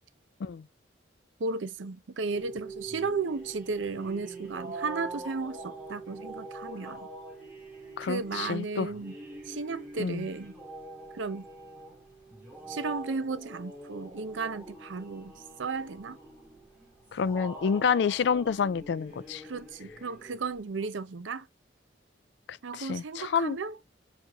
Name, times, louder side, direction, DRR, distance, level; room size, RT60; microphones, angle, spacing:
voice 1, 1.4-7.1 8.0-9.1 9.4-10.5 11.1-11.5 12.7-16.2 19.4-21.5 22.6-23.8, right 4 dB, 85° right, 0.6 m, -34 dB
sound 1, 2.3-20.9, right 2 dB, 5° right, 1.3 m, -44 dB
voice 2, 8.0-8.9 10.0-10.3 17.1-19.4 22.5-23.6, left 6 dB, 65° left, 0.3 m, -28 dB
7.2 x 2.6 x 2.9 m
head